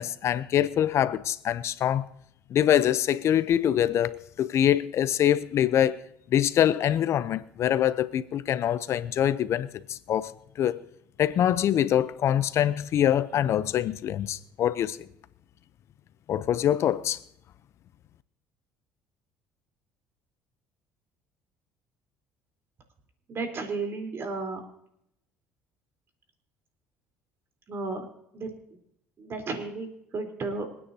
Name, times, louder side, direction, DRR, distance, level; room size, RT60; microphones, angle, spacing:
voice 1, 0.0-2.1 2.5-6.0 6.3-10.8 11.2-15.0 16.3-17.2, left 10 dB, 55° left, 0.7 m, -24 dB
voice 2, 23.3-24.6 27.7-28.1 28.3-28.5 29.2-30.7, right 3 dB, 45° right, 3.9 m, -33 dB
26.5 x 9.5 x 2.8 m
supercardioid pair, 75°, 6 cm